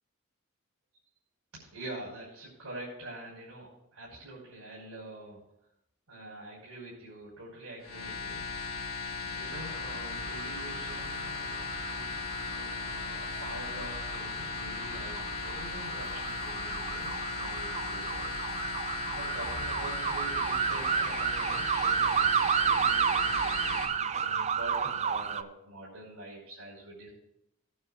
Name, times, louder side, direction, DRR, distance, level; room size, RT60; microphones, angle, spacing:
voice 1, 1.5-5.4 6.1-12.2 12.5-18.4 19.1-27.1, right 1 dB, 85° right, -6 dB, 5.1 m, -45 dB
sound 1, 7.8-23.9, left 5 dB, 90° left, 1.3 m, -37 dB
sound 2, 9.5-25.4, right 7 dB, 30° right, 0.3 m, -32 dB
19.0 x 9.4 x 2.5 m, 0.83 s
head